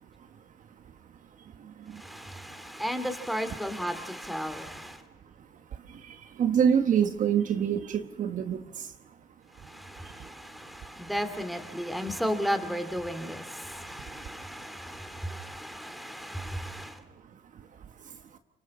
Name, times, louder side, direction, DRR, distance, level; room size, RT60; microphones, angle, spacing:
voice 1, 0.2-0.9 1.4-2.4 3.5-3.6 5.4-9.2 10.0-10.3 14.1-14.2 17.1-18.2, right 8 dB, 50° right, 1.2 m, -30 dB
voice 2, 2.0-5.0 9.7-16.9, equal, ahead, 2.5 m, -34 dB
28.5 x 25.0 x 4.3 m
cardioid pair, 110°, 17 cm